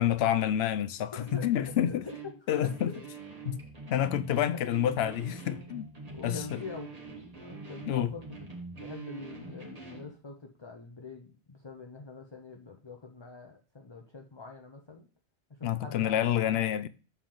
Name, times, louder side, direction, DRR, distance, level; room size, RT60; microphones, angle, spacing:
voice 1, 0.0-2.0 2.5-2.9 3.5-3.6 3.9-5.9 6.2-6.6 7.8-8.1 15.6-16.9, left 11 dB, 70° left, 0.8 m, -28 dB
voice 2, 1.1-3.0 4.5-4.6 6.1-6.9 7.4-15.1 15.5-16.7, left 4 dB, 30° left, 0.8 m, -44 dB
sound 1, 1.3-10.1, right 3 dB, 35° right, 1.5 m, -44 dB
6.8 x 4.4 x 3.8 m
omnidirectional pair, 1.1 m